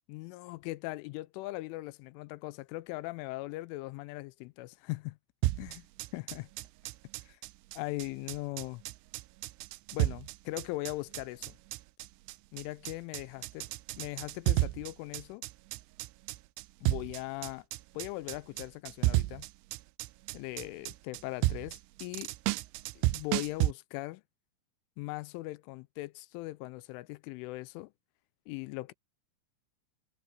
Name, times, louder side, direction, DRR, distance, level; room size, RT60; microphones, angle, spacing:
voice 1, 0.1-5.2 5.6-5.8 6.1-6.5 7.3-7.4 7.7-8.8 9.9-11.6 12.5-13.7 14.0-15.4 16.8-17.7 17.9-19.5 20.3-22.3 23.0-24.2 25.0-27.9 28.5-28.9, left 20 dB, 85° left, 3.0 m, -40 dB
sound 1, 5.4-23.7, right 18 dB, 85° right, 3.0 m, -32 dB
omnidirectional pair, 5.6 m